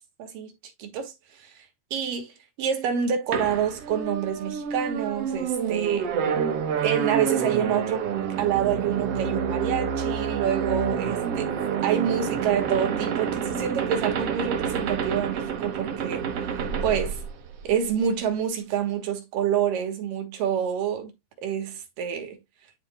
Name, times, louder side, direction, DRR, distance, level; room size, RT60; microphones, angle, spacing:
voice 1, 0.2-0.5 0.8-1.1 1.4-1.7 1.9-2.3 2.6-6.1 6.8-8.1 8.4-11.5 11.8-16.3 16.8-17.2 17.6-21.1 21.4-22.4, right 8 dB, 80° right, 3.2 m, -27 dB
sound 1, 3.3-17.9, right 7 dB, 60° right, 1.7 m, -28 dB
11.5 x 4.3 x 2.2 m
omnidirectional pair, 3.9 m